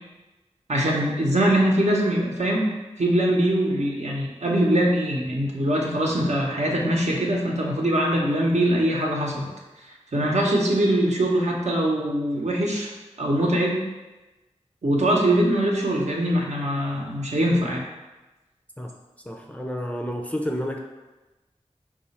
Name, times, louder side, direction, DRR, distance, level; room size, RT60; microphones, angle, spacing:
voice 1, 0.7-2.7 3.0-9.5 10.1-12.9 13.2-13.8 14.8-17.9, right 1 dB, 70° right, -2 dB, 0.8 m, -22 dB
voice 2, 19.3-20.8, equal, 10° left, 1 dB, 0.4 m, -30 dB
4.7 x 2.4 x 4.2 m, 1.1 s
wide cardioid pair, 70°, 12 cm